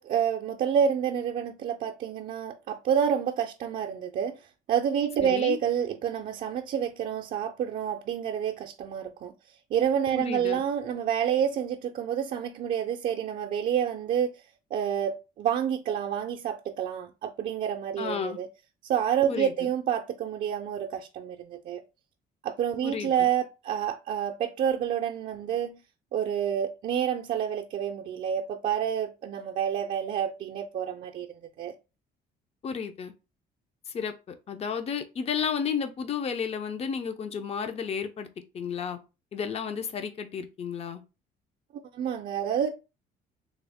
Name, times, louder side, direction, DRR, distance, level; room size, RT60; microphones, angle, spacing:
voice 1, 0.0-4.4 4.7-9.3 9.7-14.3 14.7-18.5 18.9-21.8 22.4-25.8 26.1-31.7 41.9-42.7, right 9 dB, 50° right, 0.4 m, -28 dB
voice 2, 5.2-5.6 10.2-10.6 18.0-18.4 19.3-19.7 22.8-23.3 32.6-33.1 33.9-38.3 38.5-39.0 39.3-41.0, left 6 dB, 40° left, 0.5 m, -32 dB
3.5 x 2.0 x 3.4 m
cardioid pair, 110°, 17 cm